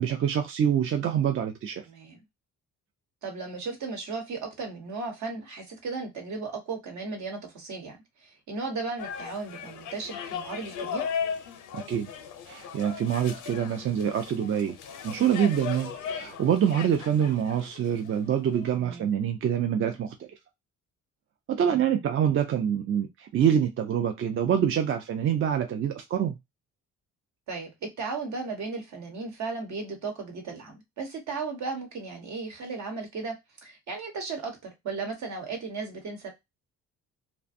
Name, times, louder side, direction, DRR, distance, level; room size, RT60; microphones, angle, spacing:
voice 1, 0.0-1.8 11.9-12.1 12.5-14.8 15.0-20.3 21.5-26.4, right 9 dB, 45° right, 0.4 m, -26 dB
voice 2, 1.9-2.2 3.2-11.0 18.7-19.1 21.7-21.8 27.5-33.3 33.6-36.3, right 4 dB, 70° right, 1.1 m, -35 dB
sound 1, 9.0-18.7, left 7 dB, 85° left, 0.6 m, -37 dB
2.5 x 2.2 x 2.5 m
cardioid pair, 90°, 30 cm